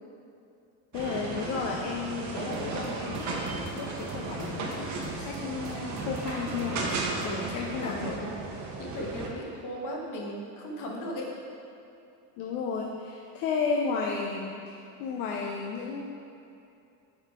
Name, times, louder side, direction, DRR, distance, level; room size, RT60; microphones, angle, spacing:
voice 1, 0.9-6.8 7.5-8.1 12.4-16.0, left 5 dB, 85° left, 0 dB, 0.7 m, -33 dB
sound 1, 0.9-9.3, right 3 dB, 45° right, 0.9 m, -35 dB
sound 2, 2.5-7.5, right 1 dB, 75° right, 1.2 m, -46 dB
voice 2, 7.2-8.3 8.6-11.3, equal, 55° left, -1 dB, 1.2 m, -37 dB
5.8 x 3.9 x 4.5 m, 2.6 s
cardioid pair, 115°, 38 cm